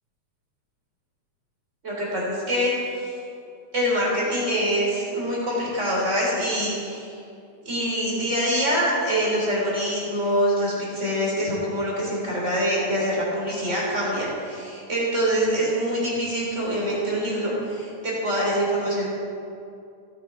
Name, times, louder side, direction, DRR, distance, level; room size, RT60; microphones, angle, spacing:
voice 1, 1.8-3.1 3.7-7.1 7.7-19.1, equal, 20° right, -5 dB, 3.7 m, -25 dB
17.0 x 9.5 x 4.5 m, 2.5 s
omnidirectional pair, 3.7 m